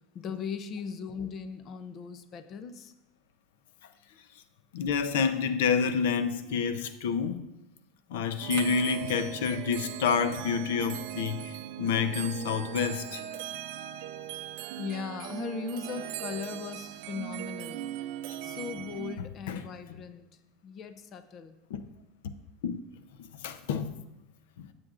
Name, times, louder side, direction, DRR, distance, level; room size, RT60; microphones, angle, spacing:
voice 1, 0.1-2.9 14.8-17.9 18.4-20.3 20.6-21.5, left 6 dB, 30° left, 10 dB, 0.5 m, -38 dB
voice 2, 4.7-7.4 8.1-13.2 19.2-19.7 19.9-20.1 21.7-21.8 22.6-22.8 23.2-23.9 24.6-24.7, left 6 dB, 90° left, 10 dB, 0.7 m, -29 dB
sound 1, 8.4-19.2, right 12 dB, 60° right, 0.5 m, -39 dB
16.0 x 7.6 x 2.5 m, 0.91 s
supercardioid pair, 165°, 0 cm